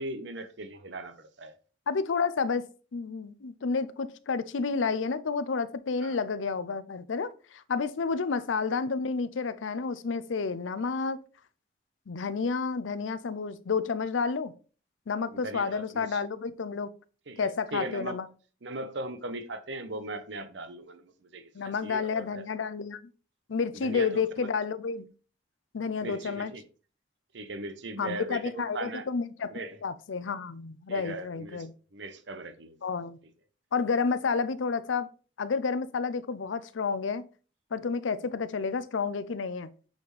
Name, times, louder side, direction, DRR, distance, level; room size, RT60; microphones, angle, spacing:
voice 1, 0.0-1.5 6.0-6.2 15.3-16.2 17.3-18.2 18.6-22.4 23.7-24.5 26.0-26.6 27.3-29.1 29.5-29.8 30.9-31.7 31.9-32.8, right 2 dB, 70° right, 0.8 m, -39 dB
voice 2, 1.9-2.6 2.9-11.2 12.1-14.5 15.1-16.9 17.4-18.3 21.5-23.0 23.5-25.1 25.7-26.5 28.0-31.7 32.8-33.2 33.7-35.1 35.4-37.2 37.7-39.7, left 5 dB, 90° left, 0.5 m, -30 dB
8.2 x 4.3 x 3.2 m
head